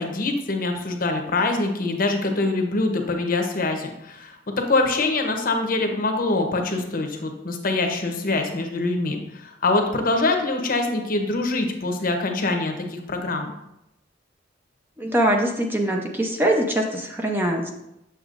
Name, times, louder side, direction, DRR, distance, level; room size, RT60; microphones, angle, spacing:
voice 1, 0.0-13.5, left 2 dB, 50° left, 4 dB, 0.9 m, -24 dB
voice 2, 15.0-17.7, right 1 dB, 10° right, 1 dB, 0.6 m, -23 dB
7.0 x 6.8 x 2.5 m, 0.86 s
head